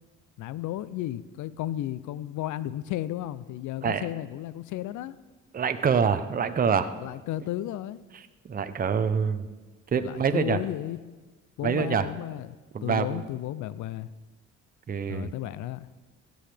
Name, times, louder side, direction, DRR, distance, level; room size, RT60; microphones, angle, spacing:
voice 1, 0.4-5.2 7.0-8.0 9.9-11.0 11.6-14.1 15.1-15.9, left 13 dB, 75° left, 17 dB, 0.5 m, -33 dB
voice 2, 5.5-6.9 8.4-9.5 9.9-10.6 11.6-12.1 12.7-13.2 14.9-15.3, right 6 dB, 30° right, 10 dB, 0.6 m, -25 dB
16.0 x 7.8 x 3.4 m, 1.2 s
cardioid pair, 90°, 30 cm